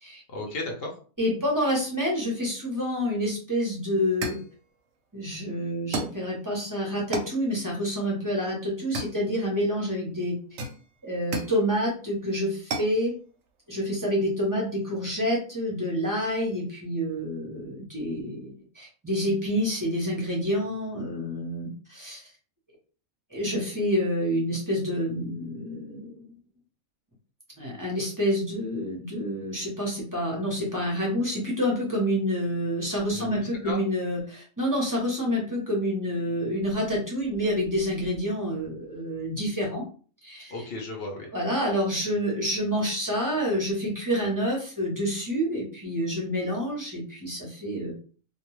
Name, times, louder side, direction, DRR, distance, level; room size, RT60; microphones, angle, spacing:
voice 1, 0.3-0.9 33.1-33.8 40.5-41.3, left 2 dB, 55° left, 1 dB, 0.8 m, -35 dB
voice 2, 1.2-4.4 5.1-10.4 11.0-13.1 13.7-22.3 23.3-26.3 27.6-39.8 40.2-40.7 41.3-47.9, equal, 20° right, -3 dB, 0.6 m, -28 dB
sound 1, 3.5-3.6 4.2-4.5 5.9-6.3 7.1-7.4 8.9-9.6 10.6-11.6 12.7-13.0, right 3 dB, 70° right, 0.8 m, -33 dB
2.3 x 2.3 x 3.1 m, 0.40 s
omnidirectional pair, 1.4 m